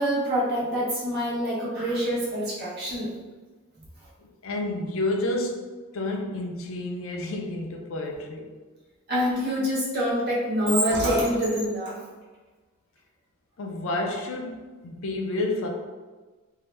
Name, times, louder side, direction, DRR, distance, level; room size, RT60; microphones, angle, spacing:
voice 1, 0.0-3.1 9.1-12.0, equal, 45° right, -6 dB, 0.9 m, -25 dB
voice 2, 4.2-5.7 5.9-8.5 13.6-15.7, left 2 dB, 65° left, 1 dB, 0.4 m, -30 dB
2.7 x 2.1 x 3.1 m, 1.3 s
head